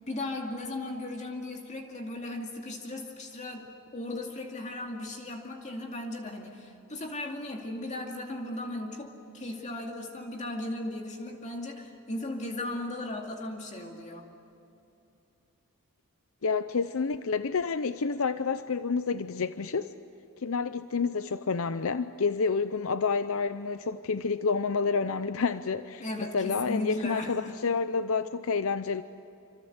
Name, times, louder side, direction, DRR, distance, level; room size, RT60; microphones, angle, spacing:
voice 1, 0.1-14.3 26.0-27.5, left 2 dB, 35° left, 2.3 m, -37 dB
voice 2, 16.4-19.9 20.4-29.0, left 5 dB, 65° left, 0.6 m, -29 dB
27.5 x 26.5 x 8.0 m
head